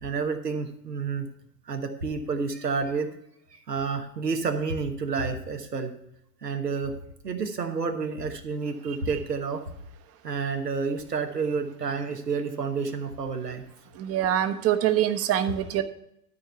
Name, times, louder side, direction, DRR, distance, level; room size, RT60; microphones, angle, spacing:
voice 1, 0.0-1.3 1.7-3.1 3.7-5.9 6.4-6.9 7.2-9.6 10.2-13.6, right 4 dB, 85° right, 6 dB, 1.3 m, -29 dB
voice 2, 14.0-15.8, right 11 dB, 30° right, 10 dB, 0.9 m, -24 dB
12.5 x 4.7 x 5.5 m, 0.78 s
figure-of-eight pair, 85°, 47 cm